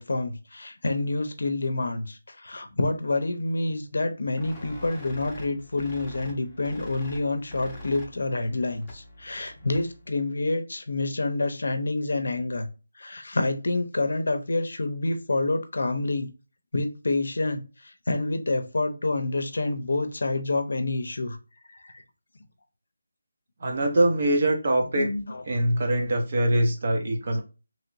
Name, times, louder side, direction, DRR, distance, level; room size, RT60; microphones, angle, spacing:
voice 1, 0.0-12.7 13.0-16.3 16.7-17.6 18.1-21.4 21.7-21.9 24.8-25.4, left 2 dB, 70° left, 0.6 m, -28 dB
sound 1, 4.4-10.1, left 1 dB, 5° left, 0.8 m, -44 dB
voice 2, 23.6-25.1 25.4-27.4, right 1 dB, 40° right, 0.8 m, -23 dB
3.0 x 2.5 x 2.9 m
figure-of-eight pair, 170°, 0 cm